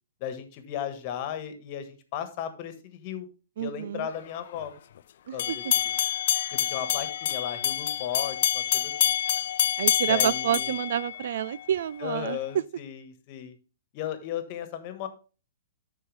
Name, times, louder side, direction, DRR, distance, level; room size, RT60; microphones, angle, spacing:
voice 1, 0.2-3.3 3.6-4.7 5.3-5.9 6.5-9.1 10.1-10.7 12.0-13.5 13.9-15.1, left 9 dB, 40° left, 1.4 m, -35 dB
voice 2, 3.6-4.1 5.3-5.7 9.8-12.4, right 10 dB, 65° right, 0.3 m, -29 dB
sound 1, 5.4-11.6, left 11 dB, 60° left, 0.4 m, -27 dB
12.5 x 4.6 x 3.3 m
hypercardioid pair, 135°, 0 cm